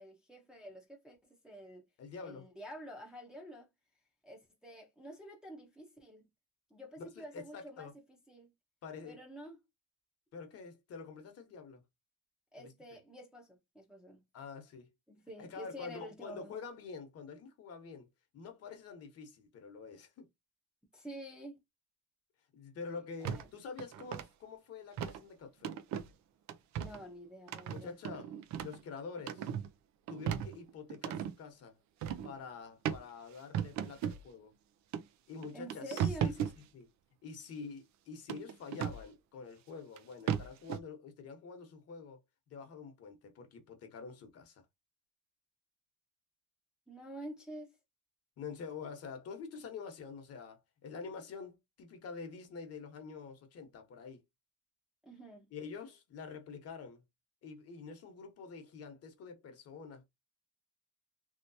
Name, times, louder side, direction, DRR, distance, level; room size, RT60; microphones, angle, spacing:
voice 1, 0.0-1.9 2.2-3.7 4.2-6.3 6.7-8.5 9.0-9.6 12.5-14.2 15.1-16.6 20.9-21.6 23.3-23.5 26.8-28.0 35.5-36.4 46.9-47.8 55.0-55.5, equal, ahead, 0.7 m, -48 dB
voice 2, 2.0-2.4 7.0-7.9 8.8-9.2 10.3-11.8 12.6-12.7 14.3-14.9 15.4-18.1 18.3-20.3 22.5-25.7 27.7-28.3 28.6-29.5 30.1-31.8 32.2-34.5 35.3-36.9 37.2-42.2 42.5-44.6 48.4-54.2 55.5-57.0 57.4-60.0, left 5 dB, 50° left, 1.0 m, -47 dB
sound 1, 23.2-23.5 23.8-24.3 25.0-25.2 25.6-26.1 26.5-27.0 27.5-28.8 29.2-29.7 30.1-31.3 32.0-32.3 32.9-33.0 33.5-34.2 34.9-35.0 35.4-36.6 38.3-39.0 40.0-40.1 40.3-40.8, right 9 dB, 65° right, 0.5 m, -36 dB
3.1 x 2.9 x 2.7 m
cardioid pair, 175°, 31 cm